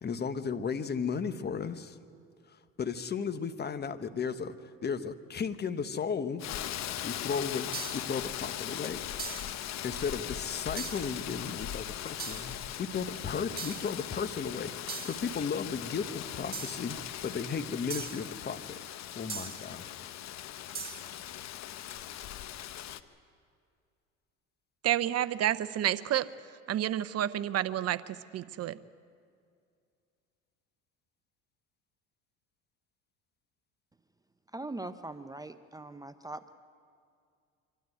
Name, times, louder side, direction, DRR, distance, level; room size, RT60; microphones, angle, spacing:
voice 1, 0.0-2.0 2.8-4.5 4.8-6.4 7.0-9.0 9.8-18.7 19.1-19.9, left 6 dB, 30° left, 11 dB, 1.2 m, -35 dB
Rain, 6.4-23.0, left 12 dB, 55° left, 0.9 m, -39 dB
sound 1, 7.7-8.2 9.2-9.6 10.8-11.1 12.2-12.6 13.6-14.0 14.9-15.3 16.5-16.9 17.9-18.3 19.3-19.7 20.7-21.1, right 5 dB, 30° right, 2.0 m, -40 dB
voice 2, 24.8-26.3 26.7-28.8, right 12 dB, 50° right, 15 dB, 0.8 m, -30 dB
voice 3, 34.5-36.5, right 2 dB, 10° right, 10 dB, 0.7 m, -41 dB
25.0 x 12.5 x 9.3 m, 2.3 s
supercardioid pair, 85°, 33 cm